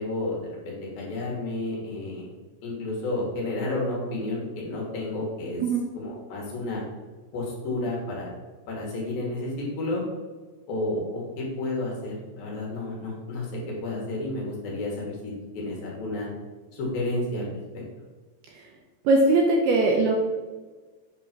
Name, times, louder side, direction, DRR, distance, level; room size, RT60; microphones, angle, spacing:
voice 1, 0.0-2.3 2.6-5.6 6.0-6.8 7.3-8.3 8.7-10.0 10.7-16.3 16.7-17.8, left 2 dB, 65° left, -3 dB, 2.9 m, -31 dB
voice 2, 19.1-20.2, right 2 dB, 80° right, 0 dB, 2.4 m, -20 dB
7.7 x 3.7 x 5.9 m, 1.3 s
omnidirectional pair, 5.1 m